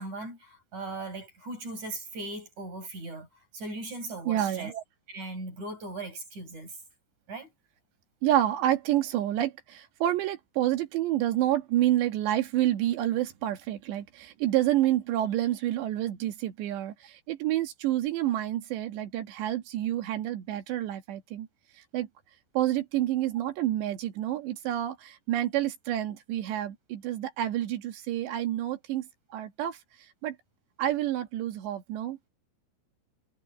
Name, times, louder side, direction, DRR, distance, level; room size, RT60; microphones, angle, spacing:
voice 1, 0.0-3.3 3.5-6.7 7.3-7.5, right 2 dB, 40° right, 8.5 m, -38 dB
voice 2, 4.3-4.7 8.2-21.5 21.9-22.1 22.6-29.0 29.3-29.8 30.2-30.4 30.8-32.3, right 13 dB, 70° right, 3.6 m, -28 dB
omnidirectional pair, 5.5 m